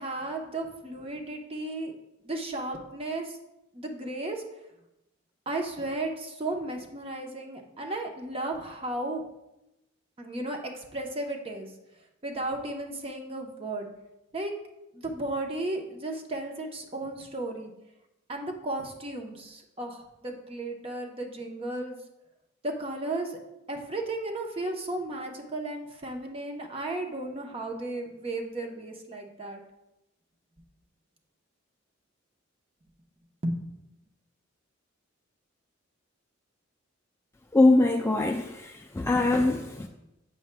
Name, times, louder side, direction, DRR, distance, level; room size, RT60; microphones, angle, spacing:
voice 1, 0.0-1.9 2.2-3.4 3.7-4.4 5.5-9.2 10.2-11.7 12.2-13.9 14.3-14.5 14.9-17.7 18.3-22.0 22.6-23.4 23.7-29.6 33.4-33.6, right 2 dB, 30° right, 2 dB, 0.8 m, -34 dB
voice 2, 37.5-39.9, left 2 dB, 15° left, 2 dB, 0.3 m, -23 dB
8.3 x 6.9 x 2.2 m, 0.90 s
head